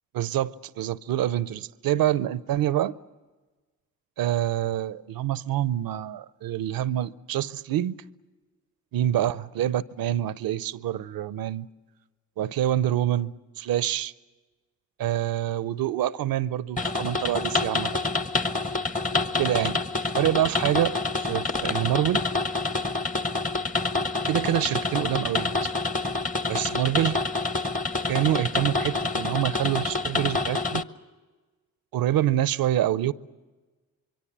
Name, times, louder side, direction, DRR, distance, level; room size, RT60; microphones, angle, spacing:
voice 1, 0.1-3.0 4.2-8.0 8.9-11.7 12.4-14.1 15.0-18.0 19.4-19.8 20.1-22.3 24.3-25.7 26.5-27.2 28.1-30.8 31.9-33.1, right 12 dB, 70° right, 0.7 m, -26 dB
sound 1, 16.8-30.8, left 3 dB, 20° left, 1.0 m, -27 dB
25.5 x 23.0 x 7.3 m
supercardioid pair, 45°, 36 cm